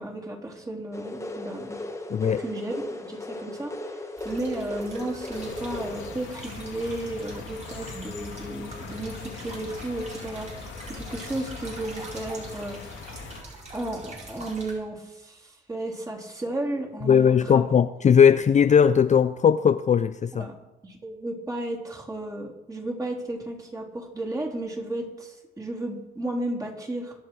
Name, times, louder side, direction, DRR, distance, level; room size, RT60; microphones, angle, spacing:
voice 1, 0.0-1.8 2.4-3.7 4.2-10.6 10.9-12.8 13.7-17.7 20.3-20.6 20.8-27.1, right 1 dB, 15° right, -2 dB, 3.8 m, -33 dB
sound 1, 0.9-6.1, left 2 dB, 15° left, 1.6 m, -36 dB
voice 2, 2.1-2.4 17.0-20.5, left 7 dB, 35° left, 12 dB, 0.5 m, -19 dB
sound 2, 4.2-14.7, right 2 dB, 35° right, 5.1 m, -44 dB
sound 3, 5.3-13.4, left 6 dB, 85° left, 2.3 m, -41 dB
23.5 x 8.0 x 4.8 m, 1.0 s
cardioid pair, 90°, 20 cm